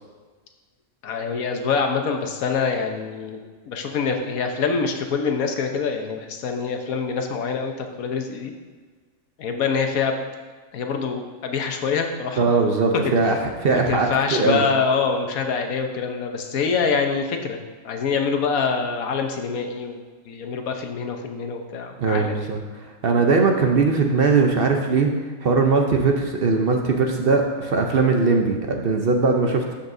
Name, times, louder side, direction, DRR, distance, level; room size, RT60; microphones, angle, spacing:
voice 1, 1.0-3.4 3.7-8.5 9.4-10.2 10.7-12.6 13.7-17.6 17.8-22.5, left 5 dB, 85° left, 4 dB, 1.3 m, -25 dB
voice 2, 12.4-14.6 22.0-25.1 25.4-29.7, right 4 dB, 50° right, 3 dB, 0.8 m, -20 dB
13.0 x 5.7 x 2.7 m, 1.5 s
omnidirectional pair, 1.4 m